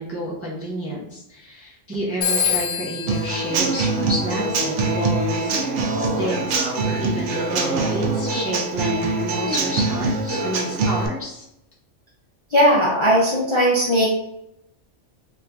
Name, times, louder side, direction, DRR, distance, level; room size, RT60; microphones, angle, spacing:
voice 1, 0.0-5.6 6.0-11.4, equal, 15° right, -5 dB, 0.6 m, -30 dB
Telephone, 2.2-4.7, left 7 dB, 50° left, 0.9 m, -27 dB
Human voice / Acoustic guitar / Drum, 3.1-11.1, right 3 dB, 75° right, 0.9 m, -23 dB
voice 2, 12.5-14.1, equal, 35° left, -6 dB, 0.5 m, -17 dB
3.1 x 2.6 x 3.4 m, 0.83 s
omnidirectional pair, 1.3 m